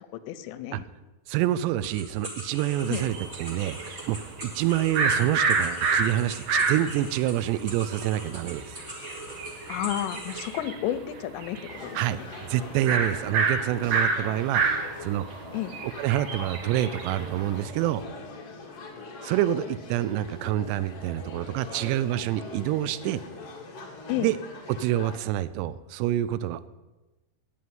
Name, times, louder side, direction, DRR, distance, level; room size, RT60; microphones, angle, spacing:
voice 1, 0.1-0.8 2.9-3.0 9.7-12.3 15.5-15.8 24.1-24.3, left 12 dB, 80° left, 12 dB, 2.8 m, -32 dB
voice 2, 1.3-8.8 11.9-12.2 12.5-14.6 15.0-15.3 16.0-18.0 19.2-23.2 24.2-24.4 24.7-26.7, right 13 dB, 85° right, 15 dB, 2.6 m, -27 dB
sound 1, 1.8-10.5, right 1 dB, 15° right, 1.4 m, -41 dB
sound 2, 2.8-7.0 7.5-7.6 7.7-10.9 11.2-12.1 12.3-12.4 12.9-17.6, right 4 dB, 60° right, 1.7 m, -28 dB
sound 3, 11.7-25.2, left 3 dB, 50° left, 2.0 m, -42 dB
8.9 x 8.5 x 9.4 m, 1.1 s
omnidirectional pair, 5.0 m